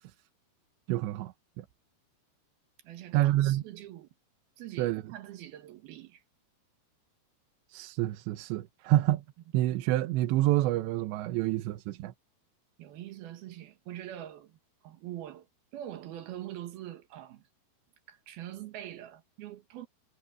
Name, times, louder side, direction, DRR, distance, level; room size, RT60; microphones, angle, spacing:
voice 1, 0.9-1.7 3.1-3.6 4.8-5.1 7.7-9.2 9.5-12.1, right 15 dB, 85° right, 3.2 m, -28 dB
voice 2, 2.8-4.1 4.6-6.2 12.8-14.6 14.8-15.5 15.7-17.4 18.1-19.9, right 12 dB, 65° right, 3.1 m, -43 dB
omnidirectional pair, 5.0 m